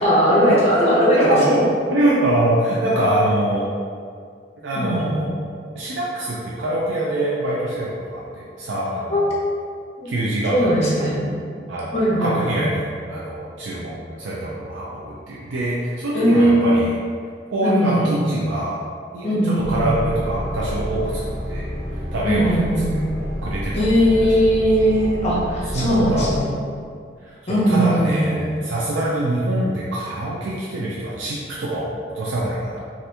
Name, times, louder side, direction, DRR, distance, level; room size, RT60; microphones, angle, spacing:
voice 1, 0.0-1.6 4.7-5.2 9.1-9.2 10.0-10.1 10.5-11.2 11.9-12.6 16.1-16.9 17.6-18.3 19.2-19.9 22.2-23.0 23.7-26.5 27.5-28.4, equal, 35° left, -6 dB, 0.7 m, -19 dB
voice 2, 1.2-1.6 1.9-3.7 4.6-5.4 5.8-9.3 10.0-11.1 11.7-17.0 17.5-18.8 19.1-22.7 23.1-23.8 25.7-26.6 27.2-32.8, right 1 dB, 85° right, -6 dB, 0.4 m, -24 dB
sound 1, 19.6-26.4, equal, 15° right, 1.1 m, -29 dB
2.8 x 2.5 x 3.3 m, 2.2 s
head